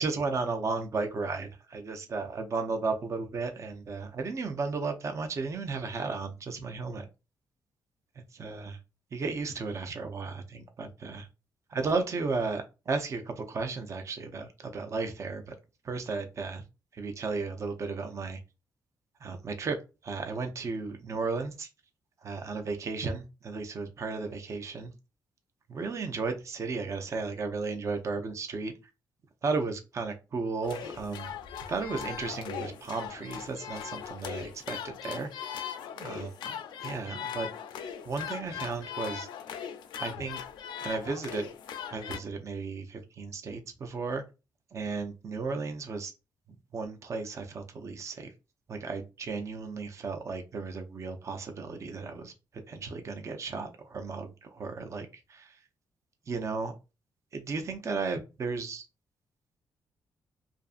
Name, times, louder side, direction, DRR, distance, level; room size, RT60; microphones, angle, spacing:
voice 1, 0.0-7.1 8.2-8.8 9.1-11.3 11.7-15.5 15.8-16.6 16.9-18.4 19.2-19.8 20.0-21.7 22.2-24.9 25.7-28.7 29.4-31.3 31.7-35.7 36.0-36.5 36.8-37.5 38.1-39.3 40.0-40.4 40.8-41.5 41.9-44.2 44.7-46.1 46.7-48.3 48.7-52.3 52.7-55.6 56.3-56.7 57.3-58.9, right 4 dB, 40° right, 0.5 m, -34 dB
sound 1, 30.6-42.2, left 8 dB, 80° left, 0.4 m, -39 dB
2.5 x 2.4 x 2.4 m
cardioid pair, 85°, 8 cm